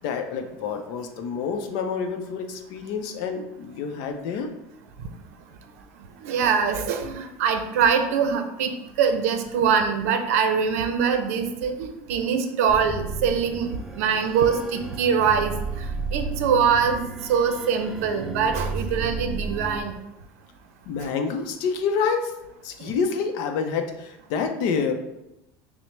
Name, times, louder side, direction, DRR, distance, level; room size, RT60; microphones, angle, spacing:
voice 1, 0.0-4.5 20.8-22.4 22.6-24.9, left 5 dB, 65° left, 6 dB, 0.5 m, -28 dB
voice 2, 6.2-17.0 17.3-19.9 21.0-21.1 22.8-22.9, right 6 dB, 90° right, 7 dB, 0.5 m, -23 dB
sound 1, 12.7-19.8, right 3 dB, 5° right, 0.4 m, -33 dB
5.8 x 2.1 x 3.2 m, 0.90 s
supercardioid pair, 140°, 8 cm